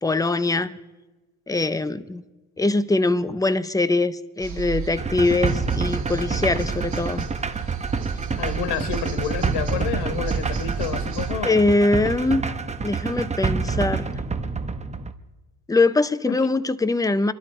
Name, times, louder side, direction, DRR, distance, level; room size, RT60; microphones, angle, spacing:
voice 1, 0.0-0.8 1.5-2.2 2.6-7.3 11.4-12.4 12.8-14.1 15.7-17.3, left 2 dB, 10° left, 0.6 m, -22 dB
sound 1, 4.4-11.3, right 7 dB, 45° right, 2.4 m, -33 dB
sound 2, 5.0-15.1, right 4 dB, 15° right, 0.9 m, -27 dB
voice 2, 8.4-11.6 16.3-16.4, left 8 dB, 85° left, 1.5 m, -29 dB
26.5 x 12.0 x 4.3 m
cardioid pair, 105°, 41 cm